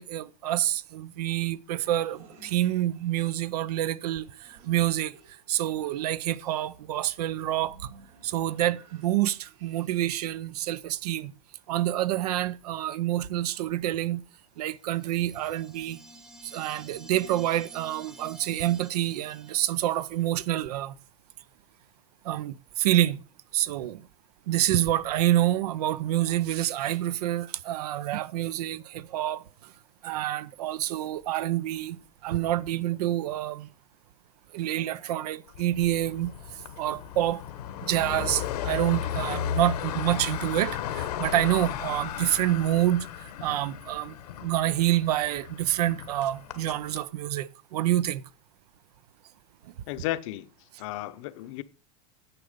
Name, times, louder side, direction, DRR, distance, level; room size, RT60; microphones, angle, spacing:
voice 1, 0.0-5.2 5.5-7.9 8.2-11.3 11.7-14.2 14.6-16.0 16.4-21.0 22.2-23.2 23.5-24.1 24.5-29.7 30.0-32.0 32.2-33.7 34.5-37.4 37.8-44.2 44.4-48.2 49.6-49.7, right 13 dB, 85° right, 0.7 m, -27 dB
sound 1, 1.4-10.3, right 4 dB, 60° right, 4.1 m, -56 dB
sound 2, 14.8-20.2, equal, 5° right, 0.7 m, -51 dB
sound 3, 35.5-47.0, left 10 dB, 90° left, 1.3 m, -35 dB
voice 2, 49.9-50.5 50.8-51.6, left 16 dB, 55° left, 0.7 m, -33 dB
9.9 x 6.9 x 5.1 m
supercardioid pair, 160°, 20 cm